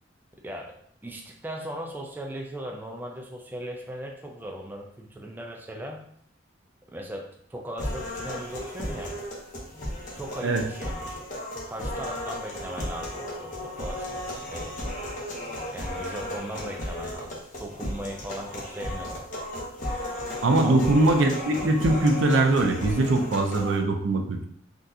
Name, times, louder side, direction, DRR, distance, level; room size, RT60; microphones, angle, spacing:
voice 1, 0.4-0.7 1.0-6.0 6.9-9.2 10.2-11.2 11.6-14.8 15.7-19.3 20.6-20.9, equal, 10° right, 1 dB, 0.3 m, -38 dB
sound 1, 7.8-23.8, left 1 dB, 45° left, 0.8 m, -35 dB
voice 2, 20.4-24.5, right 2 dB, 80° right, 4 dB, 0.5 m, -22 dB
3.7 x 2.3 x 2.7 m, 0.67 s
head